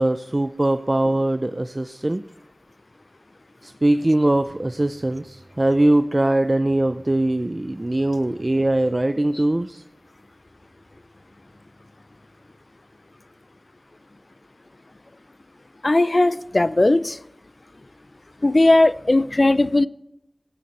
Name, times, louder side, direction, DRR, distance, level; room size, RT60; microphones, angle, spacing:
voice 1, 0.0-2.2 3.6-9.8, right 1 dB, 40° right, 0.4 m, -21 dB
voice 2, 15.8-17.2 18.4-19.9, left 2 dB, 55° left, 0.4 m, -17 dB
16.0 x 7.8 x 4.2 m
wide cardioid pair, 45°, 0 cm